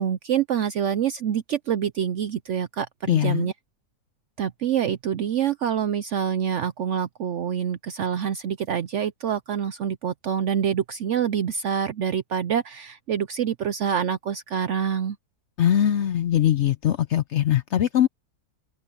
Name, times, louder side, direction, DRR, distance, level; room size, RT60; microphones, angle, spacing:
voice 1, 0.0-3.5 4.4-15.2, right 8 dB, 65° right, 0.8 m, -26 dB
voice 2, 3.1-3.5 15.6-18.1, left 11 dB, 65° left, 0.7 m, -21 dB
omnidirectional pair, 1.7 m